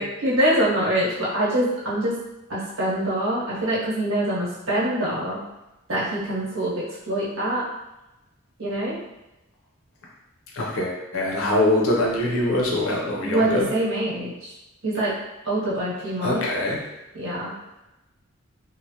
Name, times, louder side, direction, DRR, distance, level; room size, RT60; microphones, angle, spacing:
voice 1, 0.0-2.2 2.5-5.4 5.9-7.7 8.6-9.0 13.2-14.5 14.8-15.2 15.4-16.4 17.1-17.5, right 1 dB, 75° right, -7 dB, 1.1 m, -24 dB
voice 2, 10.5-13.7 16.2-16.9, left 1 dB, 80° left, -2 dB, 0.6 m, -23 dB
3.1 x 2.0 x 2.7 m, 0.97 s
head